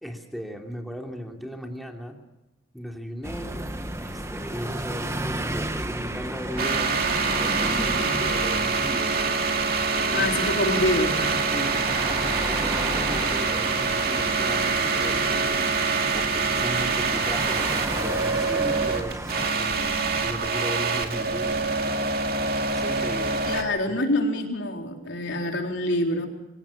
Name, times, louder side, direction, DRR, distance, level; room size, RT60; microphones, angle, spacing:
voice 1, 0.0-2.1 2.7-3.6 4.0-7.0 7.4-9.3 10.1-10.2 11.5-21.5 22.7-23.9, equal, ahead, 2 dB, 3.0 m, -36 dB
sound 1, 3.2-19.5, right 1 dB, 15° right, 1.2 m, -33 dB
sound 2, 6.6-23.6, right 4 dB, 55° right, 2.4 m, -25 dB
voice 2, 10.1-11.4 23.5-26.3, left 1 dB, 85° left, 2 dB, 4.1 m, -26 dB
25.0 x 17.5 x 7.3 m, 0.94 s
head